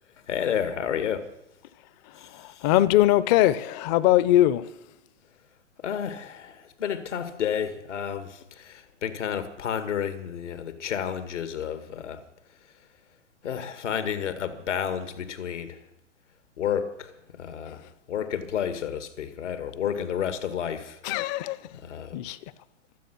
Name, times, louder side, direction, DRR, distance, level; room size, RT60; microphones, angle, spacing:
voice 1, 0.2-1.3 2.2-2.7 5.8-12.2 13.4-15.8 16.6-17.8 18.1-21.0 21.7-22.2, left 8 dB, 70° left, 2.0 m, -31 dB
voice 2, 2.3-4.7 21.0-21.6 22.1-22.4, left 14 dB, 35° left, 0.8 m, -21 dB
24.0 x 8.1 x 6.2 m
hypercardioid pair, 115°, 37 cm